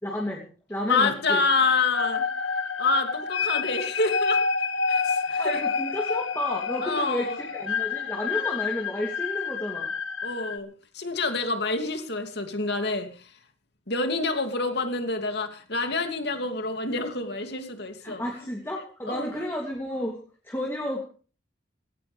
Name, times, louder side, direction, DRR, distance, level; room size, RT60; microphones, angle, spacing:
voice 1, 0.0-1.4 5.2-9.9 18.0-20.2 20.4-21.0, equal, 10° left, -1 dB, 3.0 m, -32 dB
voice 2, 0.9-2.3 2.8-4.4 4.9-5.6 6.8-7.4 10.2-10.7 10.9-13.3 13.9-18.2 19.1-19.5, left 3 dB, 55° left, 6 dB, 2.8 m, -27 dB
sound 1, 1.9-10.6, left 5 dB, 80° left, 1.5 m, -28 dB
18.5 x 17.5 x 3.5 m, 0.39 s
head